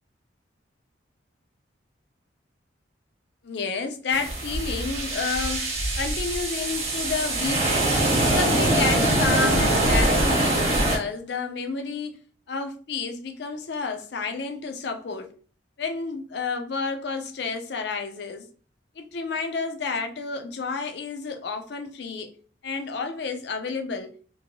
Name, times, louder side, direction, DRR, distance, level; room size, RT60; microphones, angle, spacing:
voice 1, 3.4-7.9 8.2-12.2 12.5-15.3 15.8-18.5 19.0-22.3 22.6-24.2, left 4 dB, 60° left, 0.5 m, -30 dB
sound 1, 4.1-11.0, right 1 dB, 35° right, 0.9 m, -23 dB
2.7 x 2.6 x 2.9 m
head